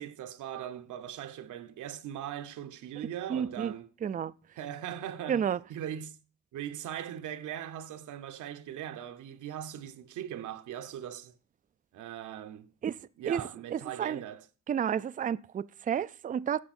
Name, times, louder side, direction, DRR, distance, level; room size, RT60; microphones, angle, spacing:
voice 1, 0.0-3.9 4.6-5.4 5.7-6.2 6.5-11.3 11.9-12.7 13.2-14.4, right 10 dB, 80° right, 1.1 m, -40 dB
voice 2, 3.3-3.7 4.0-4.3 5.3-5.6 12.8-13.0 13.3-13.4 13.7-14.2 14.7-16.6, right 8 dB, 30° right, 0.4 m, -31 dB
12.0 x 7.8 x 4.3 m
cardioid pair, 90°, 30 cm